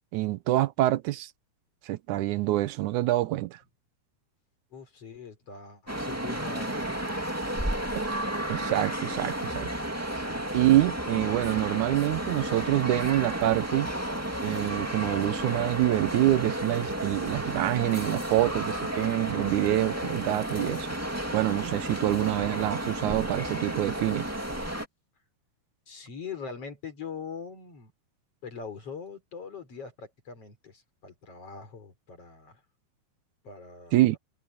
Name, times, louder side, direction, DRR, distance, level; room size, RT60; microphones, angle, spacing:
voice 1, 0.1-1.3 1.9-3.6 8.0-8.1 8.5-9.7 10.5-13.9 14.4-20.9 21.3-24.3 33.9-34.2, right 16 dB, 80° right, 2.2 m, -26 dB
voice 2, 4.7-7.2 10.1-10.8 25.9-27.9 28.4-32.6 33.4-34.2, left 5 dB, 50° left, 5.4 m, -42 dB
sound 1, 5.9-24.9, right 1 dB, 5° right, 1.8 m, -32 dB
omnidirectional pair, 3.5 m